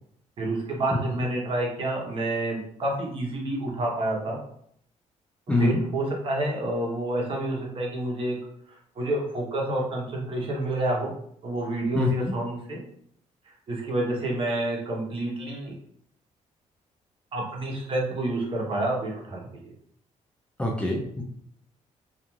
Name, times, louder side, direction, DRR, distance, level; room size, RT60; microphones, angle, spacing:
voice 1, 0.4-4.4 5.5-8.4 9.0-11.1 11.4-12.8 13.5-15.8 17.3-19.7, right 1 dB, 45° right, -2 dB, 0.9 m, -29 dB
voice 2, 5.5-5.8 11.9-12.3 20.6-21.2, left 2 dB, 10° left, -2 dB, 0.4 m, -24 dB
2.4 x 2.4 x 3.0 m, 0.67 s
cardioid pair, 135°, 13 cm